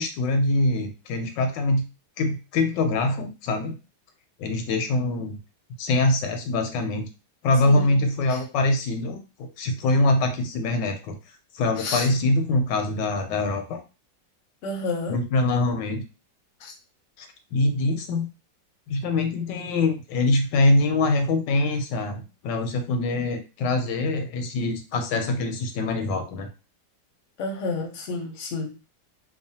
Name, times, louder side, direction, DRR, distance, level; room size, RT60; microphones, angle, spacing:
voice 1, 0.0-1.8 2.2-3.7 4.4-5.4 5.8-7.1 7.4-11.2 11.5-13.8 15.1-16.0 17.2-18.3 18.9-26.5, left 2 dB, 85° left, 6 dB, 1.3 m, -24 dB
voice 2, 7.6-8.0 8.3-8.4 11.8-12.1 14.6-15.2 16.6-16.8 27.4-28.9, left 3 dB, 55° left, 2 dB, 0.8 m, -30 dB
3.0 x 2.2 x 2.7 m, 0.30 s
omnidirectional pair, 1.9 m